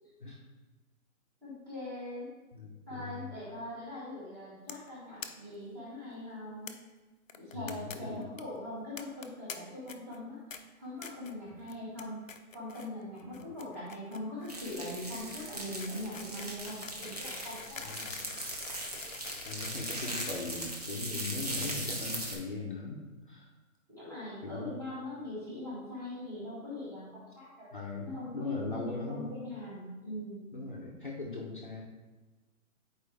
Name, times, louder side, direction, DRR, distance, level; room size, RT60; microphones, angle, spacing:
voice 1, 1.4-2.3 2.9-6.8 7.4-10.4 10.8-12.2 12.5-17.9 23.9-27.7 28.0-30.5, left 1 dB, 10° right, -10 dB, 1.4 m, -41 dB
voice 2, 2.5-3.3 7.5-8.2 11.5-11.6 13.2-13.4 17.8-18.1 19.4-23.5 24.4-24.7 27.7-29.3 30.5-31.8, left 3 dB, 35° left, -2 dB, 0.8 m, -40 dB
sound 1, 4.7-4.9 5.2-5.3 5.5-5.6 5.9-6.0 6.7-6.8 7.3-8.0 8.2-8.4 9.0-9.5 9.9-10.2 10.5-10.6 11.0-11.3 11.7-12.0 12.3-12.9 13.2-21.2, left 6 dB, 65° left, 0.8 m, -46 dB
sound 2, 14.5-22.3, right 1 dB, 30° right, 0.8 m, -39 dB
8.9 x 4.6 x 3.4 m, 1.2 s
hypercardioid pair, 175°, 42 cm